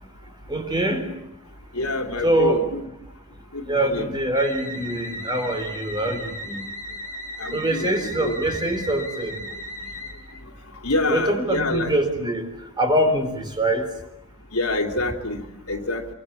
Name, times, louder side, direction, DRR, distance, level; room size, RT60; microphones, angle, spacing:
voice 1, 0.5-1.1 2.2-2.7 3.7-6.6 7.5-9.4 11.1-12.4 12.8-13.9, right 1 dB, 20° right, 7 dB, 4.2 m, -24 dB
voice 2, 1.7-2.9 3.5-4.1 7.4-8.4 9.4-9.5 10.8-11.9 14.5-16.1, left 2 dB, 80° left, 5 dB, 3.1 m, -27 dB
sound 1, 4.4-10.4, equal, 15° left, 3.2 m, -36 dB
26.0 x 24.5 x 8.5 m, 0.82 s
head